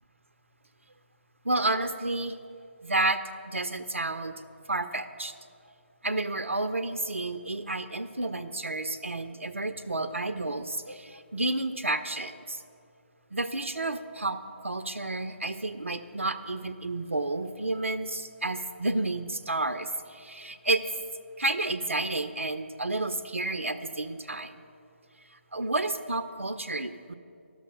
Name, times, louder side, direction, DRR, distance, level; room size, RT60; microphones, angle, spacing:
voice 1, 1.4-2.4 2.8-4.3 4.7-5.3 6.0-12.6 13.3-20.9 21.4-24.6 25.3-27.1, right 2 dB, 80° right, 9 dB, 0.5 m, -31 dB
12.0 x 6.3 x 5.2 m, 2.4 s
figure-of-eight pair, 150°, 7 cm